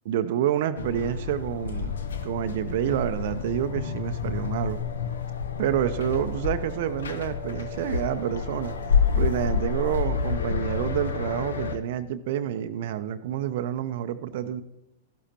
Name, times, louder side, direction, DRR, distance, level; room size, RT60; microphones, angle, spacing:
voice 1, 0.1-4.8 5.6-14.6, right 10 dB, 55° right, 10 dB, 0.5 m, -28 dB
sound 1, 0.8-11.8, left 6 dB, 70° left, 0.8 m, -29 dB
12.5 x 11.5 x 2.9 m, 0.85 s
figure-of-eight pair, 95°, 0 cm